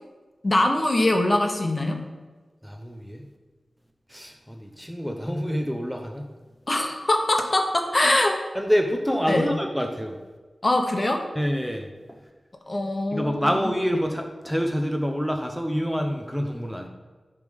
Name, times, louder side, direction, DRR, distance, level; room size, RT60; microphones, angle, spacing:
voice 1, 0.4-2.0 6.7-8.3 9.3-9.5 10.6-11.2 12.7-13.7, left 1 dB, 35° left, 4 dB, 1.0 m, -23 dB
voice 2, 2.6-3.2 4.1-6.3 8.5-10.2 11.4-11.9 13.1-16.9, equal, ahead, 3 dB, 0.6 m, -27 dB
10.0 x 3.4 x 5.2 m, 1.3 s
wide cardioid pair, 85°, 0 cm